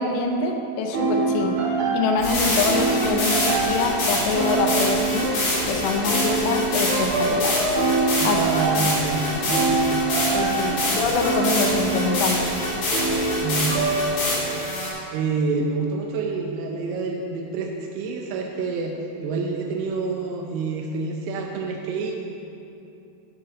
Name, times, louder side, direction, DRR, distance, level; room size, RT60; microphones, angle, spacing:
voice 1, 0.0-1.6 1.9-5.3 5.7-7.7 8.2-8.4 10.3-12.5, left 4 dB, 75° left, 3 dB, 2.9 m, -25 dB
sound 1, 0.9-14.6, right 3 dB, 50° right, 2.2 m, -25 dB
sound 2, 2.2-14.9, left 1 dB, 60° left, 4.8 m, -26 dB
voice 2, 8.2-10.0 10.6-11.1 13.4-13.9 15.1-22.1, right 4 dB, 80° right, 1 dB, 2.5 m, -28 dB
11.0 x 10.0 x 4.0 m, 2.7 s
omnidirectional pair, 5.2 m